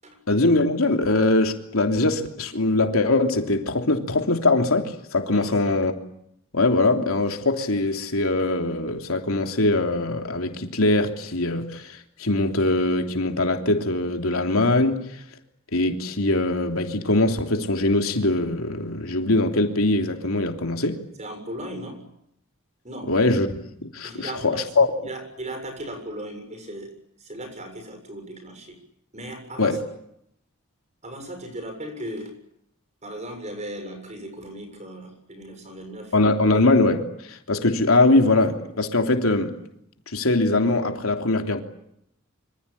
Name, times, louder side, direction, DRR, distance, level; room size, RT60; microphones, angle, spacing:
voice 1, 0.3-5.9 6.5-15.1 15.7-21.0 23.1-24.9 29.6-29.8 36.1-39.6 40.1-41.6, left 2 dB, 80° left, 3.2 m, -22 dB
voice 2, 5.3-5.8 21.2-22.1 22.8-23.1 24.0-24.6 25.1-26.9 27.2-28.8 29.1-29.8 31.0-32.3 33.0-36.1, right 1 dB, 35° right, 6.9 m, -37 dB
26.0 x 26.0 x 8.7 m
head